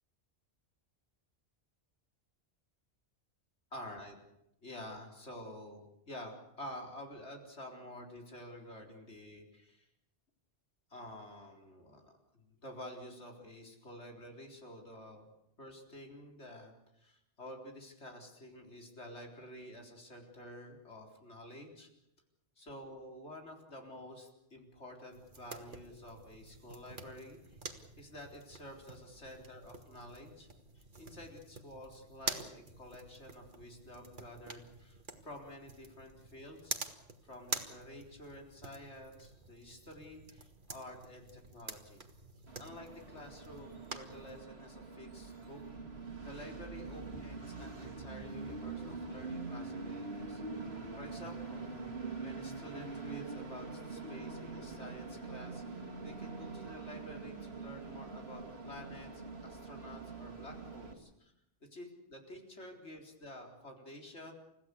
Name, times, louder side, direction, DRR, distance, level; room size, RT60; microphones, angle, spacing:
voice 1, 3.7-4.2 4.6-9.8 10.9-15.3 15.6-16.7 17.0-21.9 22.6-30.5 30.7-42.0 42.6-45.6 46.2-50.4 51.0-51.7 52.2-61.3 61.7-64.3, left 1 dB, 90° left, 2 dB, 4.3 m, -50 dB
sound 1, 25.1-44.4, right 3 dB, 50° right, 1.9 m, -47 dB
Train, 42.5-60.9, right 3 dB, 70° right, 2.9 m, -44 dB
30.0 x 15.5 x 8.4 m, 0.83 s
omnidirectional pair, 1.1 m